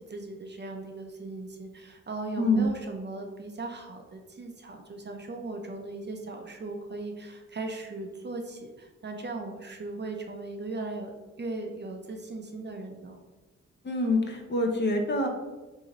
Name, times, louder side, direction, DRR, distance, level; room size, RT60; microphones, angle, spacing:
voice 1, 0.0-11.1 11.4-13.2, right 2 dB, 35° right, 3 dB, 0.5 m, -38 dB
voice 2, 13.8-15.3, left 2 dB, 35° left, 3 dB, 0.6 m, -25 dB
3.0 x 2.7 x 3.7 m, 1.2 s
cardioid pair, 75°, 29 cm